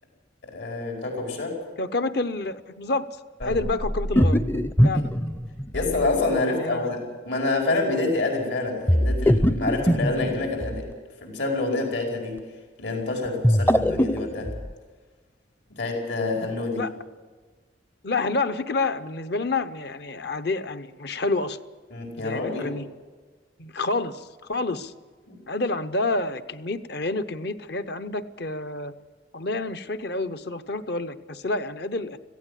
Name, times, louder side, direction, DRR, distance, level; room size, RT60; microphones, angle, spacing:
voice 1, 0.4-1.6 3.4-3.6 5.7-10.9 11.2-12.4 12.8-14.5 15.8-16.9 21.9-22.7 25.3-25.4, left 2 dB, 80° left, 1 dB, 5.0 m, -27 dB
voice 2, 1.8-3.1 3.4-4.4 4.8-5.1 5.7-6.0 6.6-6.9 16.7-16.9 18.0-21.6 22.2-22.8 23.6-24.9 25.5-28.9 29.3-32.2, left 3 dB, 60° left, 12 dB, 0.9 m, -28 dB
sound 1, 3.4-6.2 8.9-10.9 13.3-14.7, equal, 10° left, 0.5 m, -22 dB
16.5 x 15.5 x 10.0 m, 1.4 s
head